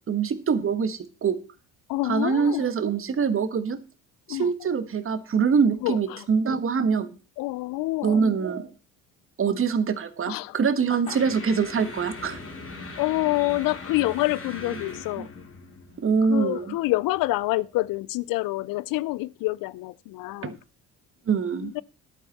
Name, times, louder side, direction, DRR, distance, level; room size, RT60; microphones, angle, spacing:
voice 1, 0.1-1.4 2.1-3.8 4.3-7.1 8.0-8.7 9.4-12.4 15.2-15.3 16.0-16.7 20.4-20.5 21.3-21.7, right 6 dB, 35° right, 1.3 m, -24 dB
voice 2, 1.9-2.7 4.3-4.5 5.8-6.3 7.4-8.2 10.3-10.6 11.1-11.2 13.0-15.4 16.3-20.6 21.6-21.8, left 19 dB, 65° left, 0.6 m, -27 dB
sound 1, 11.1-17.5, left 3 dB, 40° left, 3.3 m, -40 dB
11.0 x 9.2 x 4.1 m
supercardioid pair, 70°, 36 cm